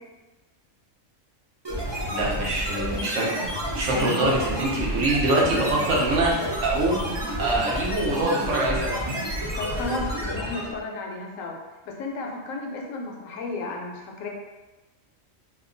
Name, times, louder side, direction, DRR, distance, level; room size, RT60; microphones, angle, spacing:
sound 1, 1.6-10.8, equal, 30° right, 0.5 m, -30 dB
voice 1, 2.1-3.4 3.7-6.3 6.6-7.0 7.4-9.1, right 2 dB, 65° right, -4 dB, 1.1 m, -24 dB
voice 2, 3.9-4.3 9.6-11.6 11.9-14.3, left 3 dB, 80° left, 0 dB, 1.0 m, -33 dB
2.8 x 2.2 x 3.7 m, 1.1 s
omnidirectional pair, 1.4 m